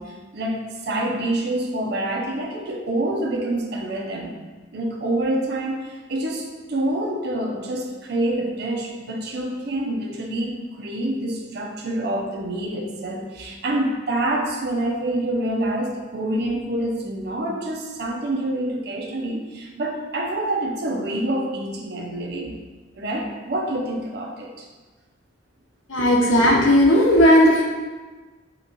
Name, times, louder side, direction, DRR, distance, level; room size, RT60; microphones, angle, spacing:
voice 1, 0.0-4.3 4.7-22.5 22.9-24.7, right 1 dB, 55° right, 1 dB, 0.5 m, -27 dB
voice 2, 25.9-27.6, equal, 85° left, -1 dB, 0.8 m, -15 dB
3.5 x 2.9 x 3.9 m, 1.3 s
head